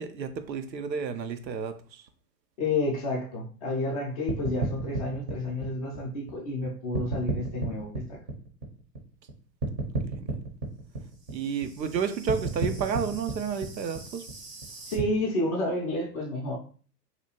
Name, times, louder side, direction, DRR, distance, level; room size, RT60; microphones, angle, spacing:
voice 1, 0.0-2.0 10.0-10.4 11.3-14.2, right 6 dB, 90° right, 9 dB, 0.5 m, -31 dB
voice 2, 2.6-8.2 14.9-16.6, left 2 dB, 25° left, -2 dB, 0.4 m, -30 dB
sound 1, 4.3-6.6 6.9-9.3 9.6-15.0, right 3 dB, 25° right, 0.6 m, -33 dB
2.8 x 2.3 x 2.8 m, 0.41 s
figure-of-eight pair, 105°, 50 cm